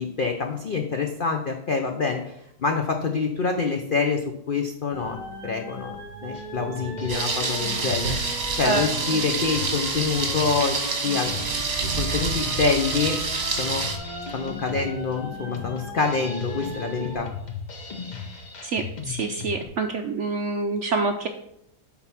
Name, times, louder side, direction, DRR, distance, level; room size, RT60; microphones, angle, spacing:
voice 1, 0.0-2.3 2.6-5.2 5.4-6.0 6.2-8.2 8.5-10.8 11.0-11.5 12.0-13.2 13.5-13.8 14.3-17.3, left 4 dB, 80° left, 3 dB, 0.4 m, -26 dB
sound 1, 4.9-17.2, right 1 dB, 5° right, 3.2 m, -38 dB
Drum kit, 6.3-19.7, left 5 dB, 40° left, 0.6 m, -38 dB
Thunder, 7.1-14.0, right 4 dB, 40° right, 1.3 m, -27 dB
voice 2, 18.7-21.3, right 3 dB, 70° right, 5 dB, 0.6 m, -26 dB
7.9 x 4.1 x 5.7 m, 0.78 s
omnidirectional pair, 1.8 m